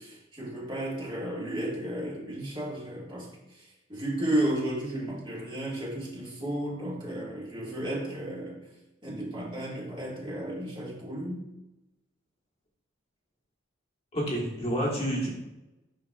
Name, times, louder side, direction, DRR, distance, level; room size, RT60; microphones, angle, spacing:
voice 1, 0.0-8.6 9.0-11.4, right 1 dB, 25° right, -5 dB, 1.8 m, -33 dB
voice 2, 14.1-15.3, equal, 30° left, -3 dB, 1.3 m, -29 dB
9.0 x 5.6 x 2.4 m, 1.0 s
head